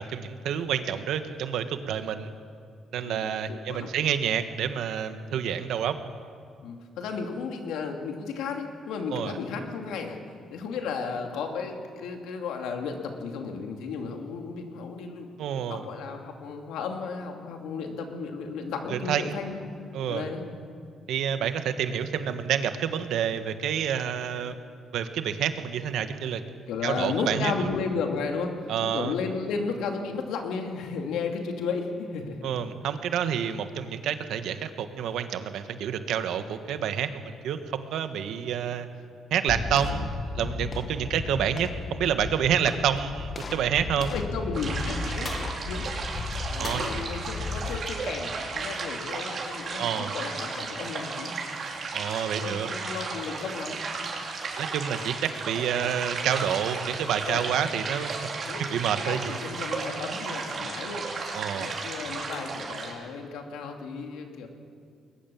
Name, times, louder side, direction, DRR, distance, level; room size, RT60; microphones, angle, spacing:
voice 1, 0.0-2.3 2.9-6.0 9.1-9.3 15.4-15.8 18.9-19.4 19.9-20.2 21.1-24.6 24.9-26.4 26.8-27.5 28.7-29.1 32.4-38.9 39.3-44.2 46.6-47.0 49.8-50.1 51.9-52.7 54.6-58.3 58.6-59.4 61.3-61.8, right 8 dB, 80° right, 9 dB, 1.4 m, -28 dB
voice 2, 3.0-3.9 6.6-10.2 10.5-15.4 15.7-19.6 20.1-20.4 26.7-32.5 39.7-40.1 44.0-45.3 45.6-45.9 46.5-51.3 52.4-53.8 57.2-57.4 58.5-58.6 59.1-61.1 61.5-64.5, left 5 dB, 90° left, 3 dB, 2.5 m, -34 dB
sound 1, 39.5-48.6, left 3 dB, 40° left, 1.5 m, -35 dB
sound 2, 44.5-62.9, right 4 dB, 55° right, 4.3 m, -34 dB
21.5 x 19.5 x 7.1 m, 2.2 s
cardioid pair, 90°, 0 cm